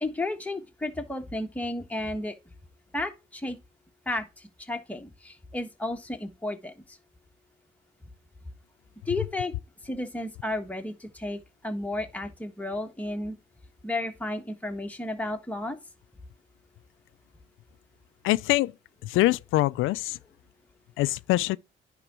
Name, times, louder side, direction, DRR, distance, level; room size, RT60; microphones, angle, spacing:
voice 1, 0.0-2.3 2.9-3.6 4.1-6.7 9.1-9.5 9.8-13.4 13.8-15.8, left 2 dB, 5° left, 1.3 m, -33 dB
voice 2, 18.2-18.7 19.0-20.2 21.0-21.6, left 18 dB, 90° left, 0.4 m, -24 dB
10.0 x 3.8 x 4.4 m
cardioid pair, 90°, 20 cm